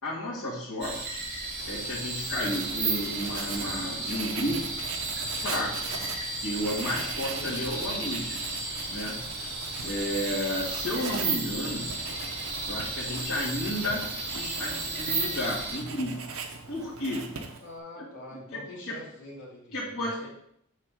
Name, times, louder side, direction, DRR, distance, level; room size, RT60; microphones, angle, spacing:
voice 1, 0.0-1.2 1.6-4.8 5.4-5.8 6.4-8.3 8.9-9.3 9.8-12.0 12.7-14.1 14.3-16.3 16.7-17.4 18.0-18.1 18.5-18.6 19.7-20.3, left 1 dB, 75° left, -10 dB, 2.1 m, -32 dB
sound 1, 0.8-15.8, right 3 dB, 50° right, 2.1 m, -34 dB
Writing, 1.6-17.8, right 5 dB, 75° right, 0.9 m, -40 dB
voice 2, 17.6-20.3, left 1 dB, 55° left, -5 dB, 2.9 m, -44 dB
7.7 x 4.1 x 5.2 m, 0.70 s
head